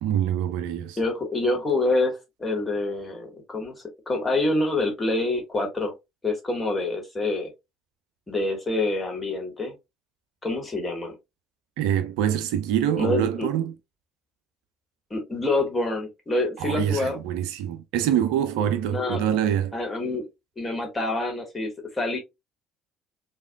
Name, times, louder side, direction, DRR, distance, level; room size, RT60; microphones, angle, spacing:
voice 1, 0.0-1.0 11.8-13.7 16.6-19.7, right 10 dB, 60° right, 0.3 m, -25 dB
voice 2, 1.0-3.7 4.1-5.9 6.2-7.5 8.3-9.7 10.4-11.2 13.0-13.5 15.1-17.2 18.9-19.3 19.7-20.2 20.6-22.2, left 2 dB, 20° left, 1.5 m, -26 dB
4.7 x 2.3 x 2.2 m
figure-of-eight pair, 55°, 0 cm